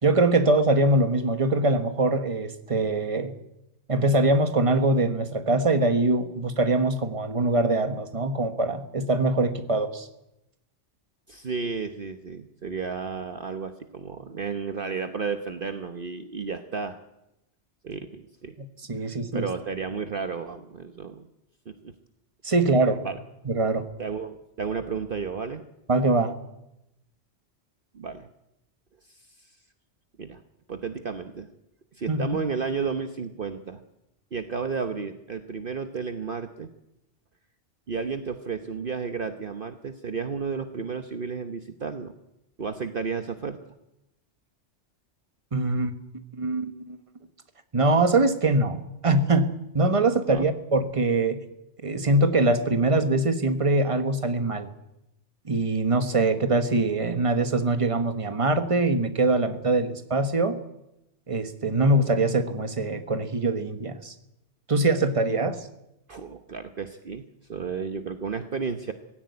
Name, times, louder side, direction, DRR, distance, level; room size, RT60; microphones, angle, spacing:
voice 1, 0.0-3.3 3.9-10.1 18.9-19.5 22.4-23.0 23.4-23.9 25.9-26.3 32.1-32.3 45.5-45.9 46.4-47.0 47.7-48.8 49.0-51.4 51.8-54.7 55.4-60.6 61.3-64.1 64.7-65.6, right 2 dB, 30° right, 9 dB, 1.4 m, -23 dB
voice 2, 11.3-17.0 17.8-18.5 19.3-21.3 21.7-21.9 23.0-23.2 24.0-25.6 27.9-28.3 29.1-29.2 30.2-30.4 30.7-31.5 31.9-33.8 34.3-36.7 37.9-42.1 42.6-43.6 50.3-50.5 66.1-67.2 67.5-68.9, right 5 dB, 50° right, 8 dB, 1.2 m, -32 dB
18.0 x 16.5 x 9.6 m, 0.88 s
omnidirectional pair, 1.2 m